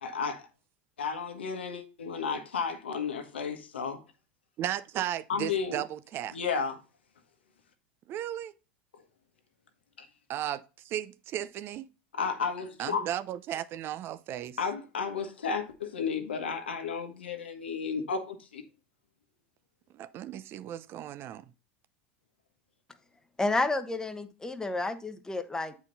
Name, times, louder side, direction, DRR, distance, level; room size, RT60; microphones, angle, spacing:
voice 1, 0.0-0.4 1.0-4.0 5.3-5.8 6.3-6.8 10.0-10.1 12.1-13.0 14.6-18.6, left 5 dB, 90° left, 1.4 m, -33 dB
voice 2, 4.6-6.4 8.1-8.5 10.3-11.9 12.8-14.6 19.9-21.5, right 12 dB, 45° right, 0.6 m, -35 dB
voice 3, 23.4-25.8, left 2 dB, 10° left, 1.0 m, -30 dB
8.6 x 4.7 x 4.0 m
hypercardioid pair, 95°, 6 cm